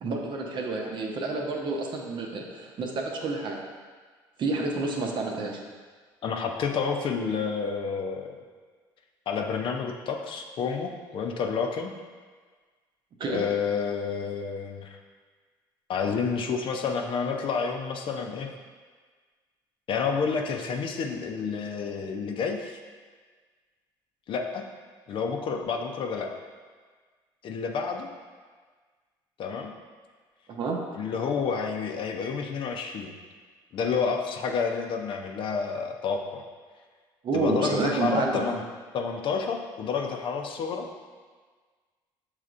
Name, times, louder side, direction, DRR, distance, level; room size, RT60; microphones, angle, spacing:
voice 1, 0.0-3.6 4.4-5.6 13.2-13.4 30.5-30.8 37.2-38.5, right 3 dB, 50° right, 1 dB, 0.8 m, -29 dB
voice 2, 6.2-8.4 9.3-11.9 13.3-15.0 15.9-18.5 19.9-22.8 24.3-24.6 25.1-26.3 27.4-28.1 29.4-29.7 30.9-33.1 33.7-36.4 37.3-38.6 38.9-40.9, left 5 dB, 55° left, 3 dB, 0.6 m, -29 dB
6.5 x 3.2 x 2.5 m, 1.5 s
supercardioid pair, 75°, 10 cm